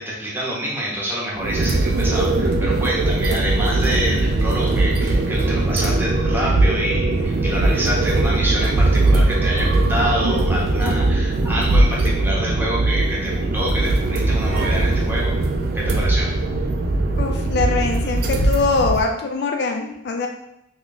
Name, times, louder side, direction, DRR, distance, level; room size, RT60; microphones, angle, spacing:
voice 1, 0.0-15.4 15.7-16.3 18.0-18.1, equal, 10° right, -4 dB, 0.7 m, -27 dB
sound 1, 1.4-19.0, right 2 dB, 50° right, 0.4 m, -20 dB
voice 2, 17.2-20.3, left 4 dB, 55° left, 3 dB, 0.3 m, -22 dB
3.0 x 2.3 x 3.8 m, 0.82 s
head